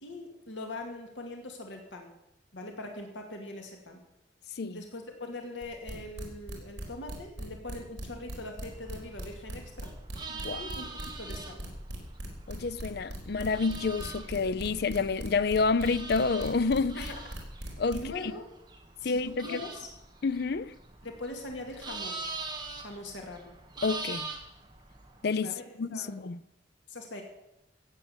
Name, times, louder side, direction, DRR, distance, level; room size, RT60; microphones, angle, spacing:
voice 1, 0.0-2.1 2.5-4.0 4.7-9.9 10.5-11.6 16.9-17.2 17.9-18.4 19.0-19.9 21.0-22.2 22.8-23.5 25.3-25.7 25.9-26.1 26.9-27.2, left 2 dB, 75° left, 2.3 m, -42 dB
sound 1, 5.6-18.2, right 1 dB, 60° right, 4.2 m, -39 dB
sound 2, 8.7-25.2, right 3 dB, 25° right, 1.8 m, -44 dB
voice 2, 10.3-10.7 12.5-17.0 17.8-18.0 19.0-19.6 20.2-20.8 23.8-24.3 25.2-26.4, left 4 dB, 55° left, 0.5 m, -29 dB
16.0 x 8.6 x 7.2 m
head